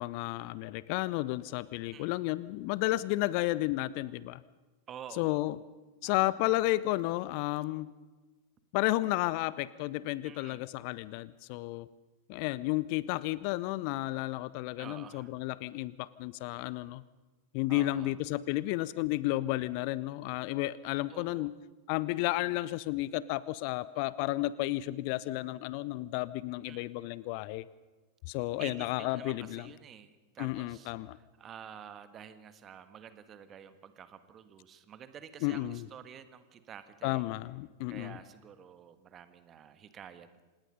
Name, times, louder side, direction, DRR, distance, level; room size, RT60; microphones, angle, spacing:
voice 1, 0.0-4.4 5.2-5.6 6.0-7.9 8.7-11.9 12.3-17.0 17.5-21.5 21.9-27.6 28.3-29.7 30.4-31.2 35.4-35.9 37.0-38.2, left 18 dB, 45° left, 19 dB, 0.6 m, -32 dB
voice 2, 4.9-5.4 6.0-6.6 10.2-10.6 14.8-15.3 17.7-18.2 21.1-21.5 26.6-26.9 28.6-37.3 37.9-40.4, right 8 dB, 25° right, 11 dB, 1.6 m, -50 dB
26.5 x 19.5 x 5.4 m, 1.2 s
figure-of-eight pair, 90°, 0 cm